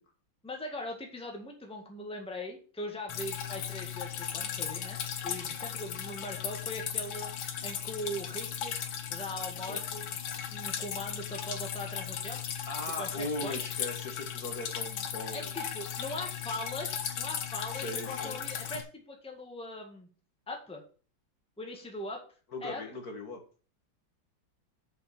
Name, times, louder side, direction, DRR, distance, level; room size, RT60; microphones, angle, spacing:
voice 1, 0.4-5.0 5.2-7.3 7.6-8.7 9.1-10.1 10.5-12.4 13.0-13.6 15.3-20.1 20.5-20.8 21.6-22.2 22.6-22.8, left 1 dB, 5° left, 2 dB, 1.7 m, -40 dB
Drip, 3.1-18.8, left 8 dB, 80° left, 1.8 m, -37 dB
voice 2, 12.7-15.5 17.7-18.4 22.5-23.4, left 1 dB, 55° left, 2 dB, 2.0 m, -39 dB
7.5 x 5.4 x 6.9 m, 0.40 s
omnidirectional pair, 2.1 m